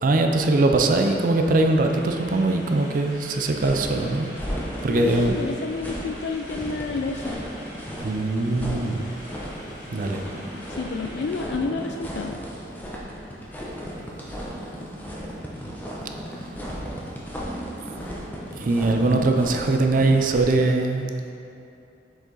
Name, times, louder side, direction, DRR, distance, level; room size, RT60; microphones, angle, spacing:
voice 1, 0.0-4.3 4.8-5.4 8.0-9.1 9.9-10.3 18.6-21.3, right 2 dB, 45° right, 4 dB, 0.4 m, -21 dB
sound 1, 0.7-11.6, equal, 45° left, 1.5 m, -44 dB
sound 2, 3.6-20.7, equal, 10° left, 0.8 m, -35 dB
voice 2, 4.9-7.4 10.7-12.4, left 4 dB, 65° left, 3 dB, 0.3 m, -30 dB
6.5 x 5.0 x 3.9 m, 2.7 s
head